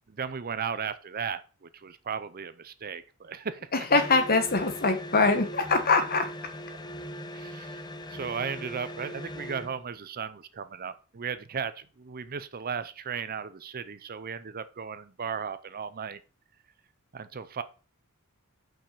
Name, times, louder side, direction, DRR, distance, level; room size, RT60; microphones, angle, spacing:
voice 1, 0.1-3.9 7.3-7.8 8.1-16.2 17.1-17.6, right 6 dB, 40° right, 13 dB, 0.6 m, -36 dB
voice 2, 3.7-6.3, left 3 dB, 40° left, 8 dB, 1.3 m, -23 dB
sound 1, 3.9-9.8, equal, 20° left, 0.7 m, -40 dB
5.7 x 5.6 x 6.7 m, 0.36 s
head